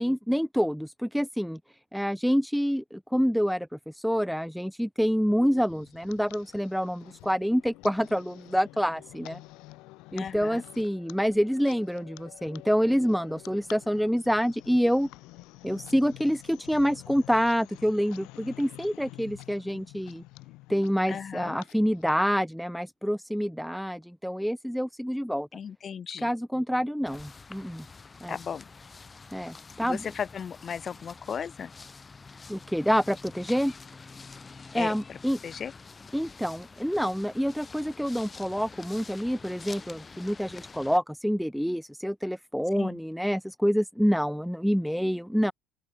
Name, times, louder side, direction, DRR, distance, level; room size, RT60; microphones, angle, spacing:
voice 1, 0.0-1.6 1.9-9.4 10.1-15.1 15.6-20.2 20.7-25.5 26.2-27.9 28.2-28.4 29.3-30.1 32.5-33.7 34.7-35.4 36.1-45.5, equal, ahead, 1.0 m, -27 dB
sound 1, 5.6-22.4, left 22 dB, 70° left, 7.5 m, -49 dB
voice 2, 10.1-10.6 21.1-21.6 25.5-26.3 28.3-28.6 29.8-31.7 34.7-35.2 35.4-35.7 42.7-43.0, left 7 dB, 45° left, 3.3 m, -36 dB
sound 2, 27.1-41.0, left 4 dB, 25° left, 6.9 m, -47 dB
open air
hypercardioid pair, 65°, 0 cm